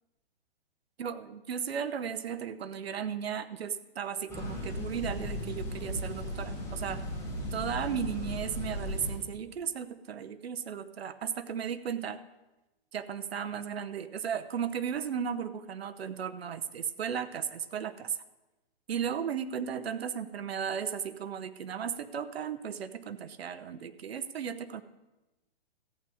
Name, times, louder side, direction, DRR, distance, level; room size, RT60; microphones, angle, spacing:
voice 1, 1.0-7.0 7.5-12.2 12.9-18.2 18.9-24.8, right 7 dB, 85° right, 11 dB, 0.9 m, -35 dB
sound 1, 4.3-9.2, left 1 dB, 10° left, 3.9 m, -36 dB
14.5 x 8.6 x 4.9 m, 1.0 s
hypercardioid pair, 145°, 30 cm